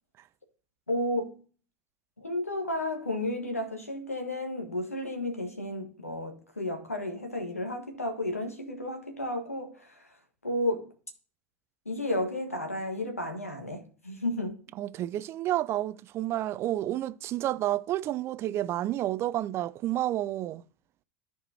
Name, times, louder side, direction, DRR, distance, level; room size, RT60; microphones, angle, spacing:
voice 1, 0.9-1.4 2.2-10.1 10.4-10.9 11.8-14.6, left 1 dB, 85° left, 1.4 m, -32 dB
voice 2, 14.8-20.6, right 13 dB, 35° right, 0.3 m, -30 dB
13.5 x 4.6 x 2.8 m
figure-of-eight pair, 80°, 8 cm